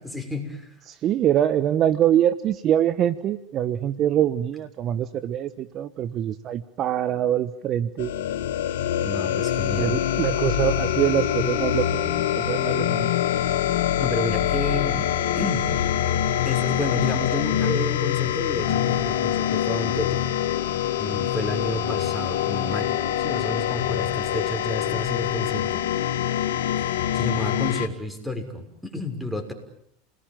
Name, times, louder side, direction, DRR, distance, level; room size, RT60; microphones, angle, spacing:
voice 1, 0.0-0.7 9.0-9.9 14.0-15.7 16.4-20.2 21.0-25.9 26.8-29.5, left 1 dB, ahead, 5 dB, 6.3 m, -31 dB
voice 2, 0.9-8.1 9.8-13.1, right 11 dB, 45° right, 14 dB, 1.1 m, -24 dB
sound 1, 8.0-27.9, left 11 dB, 80° left, 1.8 m, -25 dB
29.0 x 20.5 x 9.1 m, 0.76 s
hypercardioid pair, 105°, 0 cm